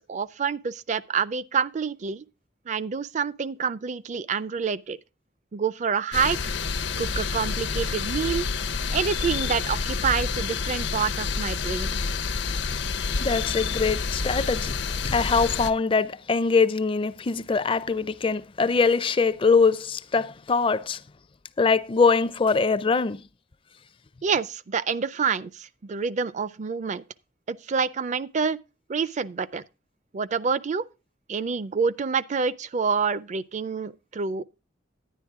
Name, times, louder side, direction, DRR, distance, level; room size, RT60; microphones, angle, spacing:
voice 1, 0.0-2.2 2.7-5.0 5.5-6.5 7.0-8.5 8.9-12.0 24.2-27.0 27.5-28.6 28.9-29.6 30.1-30.8 31.3-34.4, right 6 dB, 40° right, 0.4 m, -27 dB
sound 1, 6.1-15.7, left 5 dB, 65° left, 0.6 m, -28 dB
voice 2, 13.2-14.8 15.0-21.0 21.6-23.2, left 4 dB, 30° left, 0.4 m, -23 dB
10.0 x 10.0 x 3.6 m
head